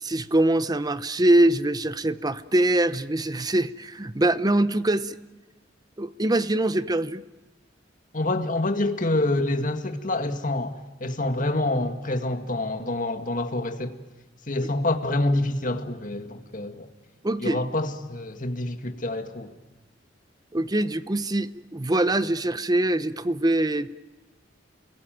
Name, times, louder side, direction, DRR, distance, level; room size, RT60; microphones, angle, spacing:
voice 1, 0.0-5.2 6.0-7.2 17.2-17.6 20.5-23.9, right 1 dB, 20° right, 0.8 m, -23 dB
voice 2, 8.1-14.0 14.5-16.9 17.4-19.5, left 2 dB, 45° left, 1.9 m, -27 dB
29.5 x 22.0 x 9.2 m
head